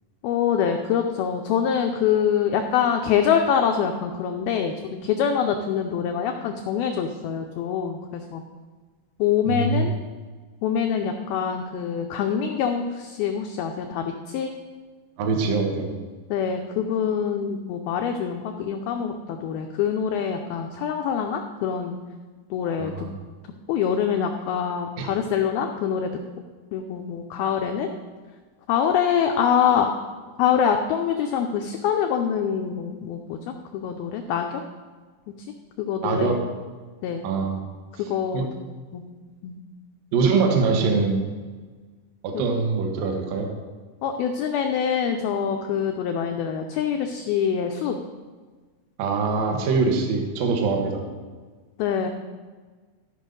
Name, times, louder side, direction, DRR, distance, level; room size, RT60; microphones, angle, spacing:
voice 1, 0.2-8.4 9.2-9.9 10.6-14.5 16.3-22.0 22.5-22.9 23.7-26.1 26.7-27.9 28.7-29.9 30.4-34.6 35.8-36.4 37.0-37.3 38.1-38.5 38.9-39.0 39.4-39.6 42.3-42.4 44.0-48.0 51.8-52.1, left 8 dB, 85° left, 4 dB, 2.1 m, -25 dB
voice 2, 9.5-9.9 15.2-15.9 22.8-23.1 25.0-25.1 36.0-36.4 37.2-37.6 38.3-38.5 40.1-41.2 42.2-43.5 49.0-51.0, right 4 dB, 65° right, 2 dB, 2.5 m, -23 dB
14.0 x 5.4 x 5.2 m, 1.4 s
omnidirectional pair, 5.1 m